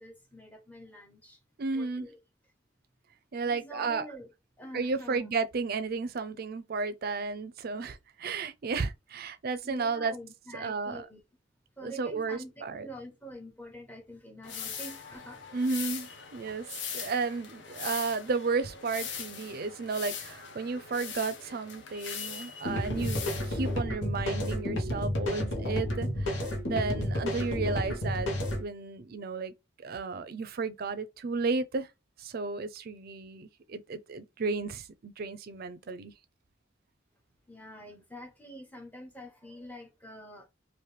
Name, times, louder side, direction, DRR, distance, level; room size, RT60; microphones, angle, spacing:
voice 1, 0.0-1.4 1.7-2.2 3.4-4.3 4.6-5.3 9.6-11.2 11.8-15.6 37.5-40.5, equal, 10° left, 0.8 m, -46 dB
voice 2, 1.6-2.1 3.3-4.1 4.7-10.1 10.5-11.1 11.8-12.9 15.5-16.6 16.9-28.3 28.6-31.9 32.2-36.1, right 4 dB, 55° right, 0.5 m, -33 dB
sound 1, 14.4-23.8, left 7 dB, 65° left, 0.7 m, -41 dB
sound 2, 22.7-28.6, left 1 dB, 90° left, 1.0 m, -31 dB
3.0 x 2.5 x 3.3 m
head